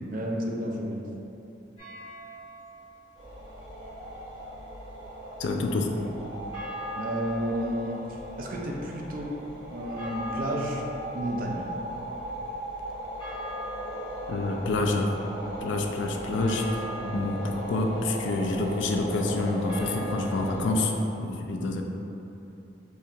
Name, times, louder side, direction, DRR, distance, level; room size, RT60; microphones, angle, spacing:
voice 1, 0.1-1.0 6.9-9.3 9.7-10.8 11.1-11.7 17.0-17.3, equal, 45° right, -1 dB, 0.4 m, -31 dB
sound 1, 1.8-2.8 6.5-20.7, left 2 dB, 25° left, 1.1 m, -43 dB
sound 2, 3.1-20.8, right 1 dB, 70° right, 1.3 m, -38 dB
voice 2, 5.4-5.9 14.3-15.1 15.6-16.8 17.1-21.8, left 2 dB, 70° left, 3 dB, 0.3 m, -27 dB
4.2 x 2.4 x 2.7 m, 2.9 s
head